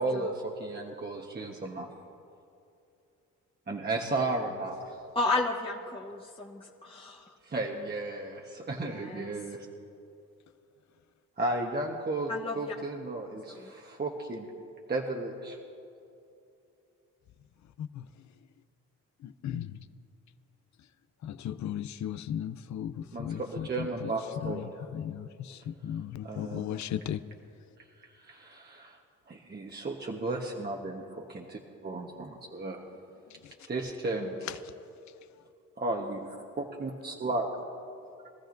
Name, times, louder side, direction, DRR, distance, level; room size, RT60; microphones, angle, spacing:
voice 1, 0.0-1.9 3.7-5.0 7.4-9.7 11.4-14.5 14.9-15.6 23.1-24.7 26.2-26.7 28.2-29.0 29.3-32.8 33.7-34.4 35.8-37.5, right 2 dB, 30° right, -1 dB, 1.2 m, -34 dB
voice 2, 5.1-7.3 8.8-9.3 12.3-12.7 13.5-13.7, left 3 dB, 15° left, -3 dB, 1.0 m, -33 dB
voice 3, 19.2-19.8 21.2-27.2 33.3-33.5 34.4-34.6, left 10 dB, 60° left, 13 dB, 0.6 m, -36 dB
23.0 x 14.0 x 2.6 m, 2.6 s
cardioid pair, 85°, 33 cm